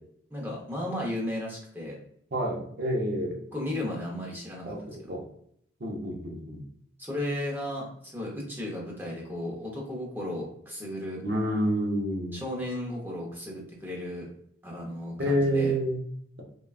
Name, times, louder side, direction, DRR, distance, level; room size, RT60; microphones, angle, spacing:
voice 1, 0.3-2.0 3.5-4.7 5.0-5.2 7.0-11.2 12.3-14.3 14.6-15.7, left 1 dB, 10° right, -3 dB, 0.6 m, -34 dB
voice 2, 2.3-3.4 4.6-4.8 5.1-5.2 5.8-6.6 11.2-12.4 15.2-16.0, right 1 dB, 55° right, 0 dB, 0.6 m, -28 dB
3.4 x 2.2 x 2.3 m, 0.68 s
head